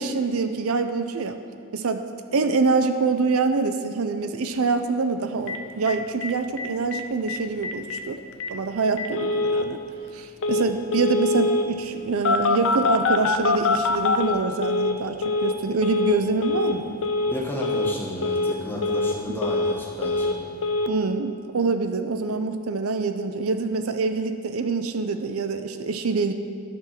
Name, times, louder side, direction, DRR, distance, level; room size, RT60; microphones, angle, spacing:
voice 1, 0.0-1.4 1.7-2.1 2.3-8.2 8.5-9.8 10.1-17.0 20.9-26.3, right 4 dB, 75° right, 9 dB, 0.6 m, -25 dB
Telephone, 5.5-5.6 5.9-6.0 6.2-6.3 6.6-7.0 7.3-7.4 7.6-8.0 8.4-8.5 9.0-9.7 10.4-10.7 10.9-11.7 12.3-15.0 15.2-15.6 15.8-16.2 16.4-16.8 17.0-17.4 17.6-18.0 18.2-18.6 18.8-19.8 20.0-20.4 20.6-20.9, left 3 dB, 65° left, 0.7 m, -24 dB
voice 2, 17.3-20.3, equal, 10° left, -4 dB, 1.8 m, -32 dB
12.5 x 6.0 x 5.8 m, 2.2 s
head